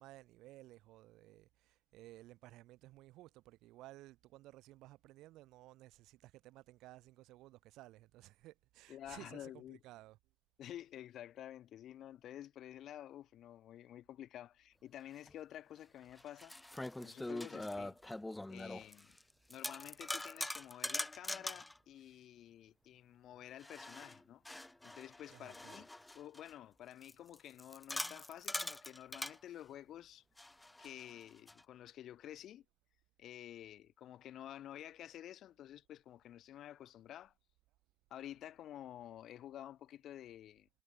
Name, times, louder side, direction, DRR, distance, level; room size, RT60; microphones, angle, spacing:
voice 1, 0.0-10.2 25.3-25.8, right 17 dB, 60° right, 2.9 m, -57 dB
voice 2, 8.9-9.8 10.6-16.6 17.0-18.0 18.5-19.2 19.5-24.4 24.8-25.9 26.1-30.2 30.8-32.7 33.2-37.3 38.1-40.7, left 11 dB, 45° left, 3.6 m, -51 dB
sound 1, 15.3-15.4 16.1-19.2 19.5-21.8 23.6-26.5 27.0-29.4 30.4-31.6, left 1 dB, 5° left, 1.1 m, -43 dB
supercardioid pair, 115°, 0 cm